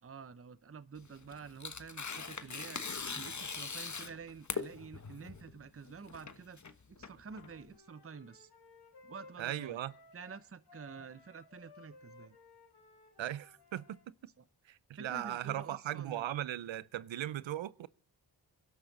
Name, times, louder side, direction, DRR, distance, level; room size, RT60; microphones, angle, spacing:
voice 1, 0.0-2.8 3.2-6.6 6.9-8.5 9.0-9.8 10.1-12.4 14.4-14.5 14.9-16.3, right 5 dB, 30° right, 0.8 m, -49 dB
Tearing, 1.0-7.7, left 5 dB, 40° left, 1.4 m, -42 dB
Wind instrument woodwind instrument, 7.2-14.1, left 4 dB, 65° left, 3.8 m, -59 dB
voice 2, 9.4-9.9 13.2-14.0 14.7-17.9, right 12 dB, 90° right, 0.6 m, -38 dB
23.0 x 12.0 x 4.0 m
cardioid pair, 40°, 44 cm